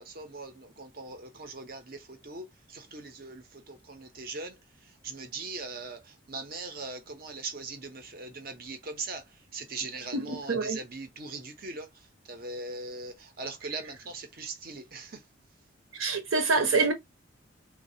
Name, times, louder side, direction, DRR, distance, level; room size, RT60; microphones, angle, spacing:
voice 1, 0.2-2.0 2.2-2.4 2.7-3.4 3.7-4.6 5.0-6.0 6.3-9.2 9.5-11.9 12.3-15.1, right 3 dB, 45° right, 0.7 m, -40 dB
voice 2, 10.1-10.8 16.0-16.9, right 3 dB, 85° right, 0.9 m, -26 dB
3.1 x 2.3 x 2.7 m
head